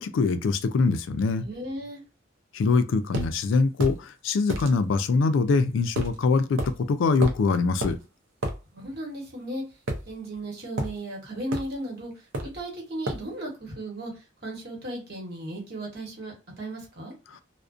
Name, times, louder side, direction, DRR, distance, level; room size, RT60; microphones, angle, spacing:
voice 1, 0.0-1.5 2.5-8.0, left 4 dB, 70° left, 0.3 m, -23 dB
voice 2, 1.4-2.0 8.7-9.6 10.1-12.1 12.4-14.1 14.4-17.1, right 1 dB, 50° right, 1.0 m, -35 dB
sound 1, 3.1-3.3 3.8-4.0 4.5-4.7 6.0-6.2 6.6-6.7 7.2-7.4 7.8-8.0 8.4-8.6 9.9-10.4 10.8-11.0 11.5-11.7 12.3-12.6 13.1-13.3, right 1 dB, 70° right, 0.5 m, -30 dB
2.4 x 2.1 x 2.4 m
head